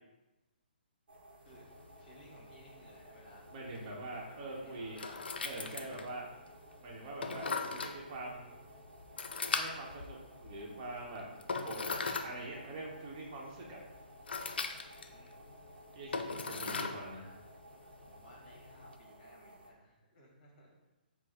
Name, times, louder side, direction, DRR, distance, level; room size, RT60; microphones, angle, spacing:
sound 1, 1.1-19.7, right 1 dB, 80° right, 0.8 m, -57 dB
sound 2, 1.5-19.0, left 4 dB, 85° left, 0.4 m, -42 dB
voice 1, 2.0-3.9 4.2-5.3 5.5-6.1 10.6-10.7 14.8-15.5 16.4-17.0 18.1-20.9, left 1 dB, 35° left, -2 dB, 1.4 m, -59 dB
voice 2, 3.5-5.1 5.4-6.2 6.8-8.6 9.5-11.3 11.6-11.8 12.2-13.8 15.9-17.3, right 2 dB, 35° right, -3 dB, 0.8 m, -44 dB
4.6 x 2.0 x 4.1 m, 1.0 s
hypercardioid pair, 150°, 5 cm